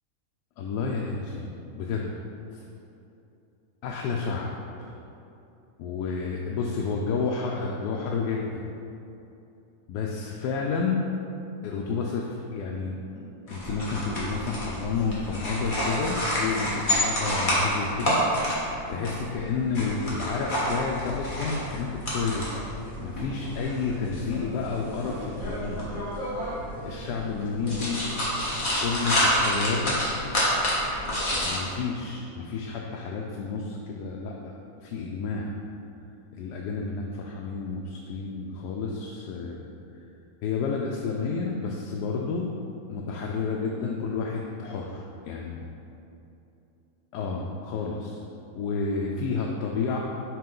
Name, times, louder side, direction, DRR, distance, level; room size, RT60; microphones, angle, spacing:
voice 1, 0.6-2.1 2.5-2.7 3.8-4.5 4.8-4.9 5.8-8.6 9.9-11.0 11.6-13.0 13.5-18.2 18.9-25.8 26.8-28.0 28.8-30.0 31.3-35.5 36.3-39.7 40.4-42.5 42.9-45.6 47.1-48.2 48.6-50.0, left 4 dB, 90° left, -1 dB, 1.1 m, -30 dB
sound 1, 13.5-31.6, equal, 35° left, 1.4 m, -29 dB
5.7 x 5.0 x 3.8 m, 2.8 s
omnidirectional pair, 1.7 m